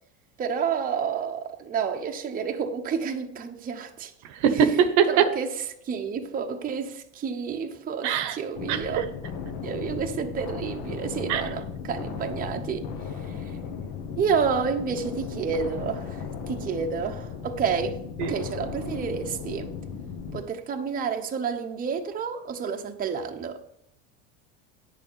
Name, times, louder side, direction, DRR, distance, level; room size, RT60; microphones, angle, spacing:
voice 1, 0.4-4.1 4.5-4.6 5.1-9.1 9.6-13.6 14.2-18.0 18.3-19.7 20.3-23.6, right 6 dB, 25° right, 0.9 m, -30 dB
voice 2, 4.3-5.3 8.0-8.4 8.7-9.0 11.3-11.4 18.2-18.3, right 7 dB, 55° right, 1.0 m, -22 dB
sound 1, 8.6-20.4, left 6 dB, 55° left, 1.6 m, -36 dB
9.3 x 6.9 x 5.6 m
supercardioid pair, 125°, 34 cm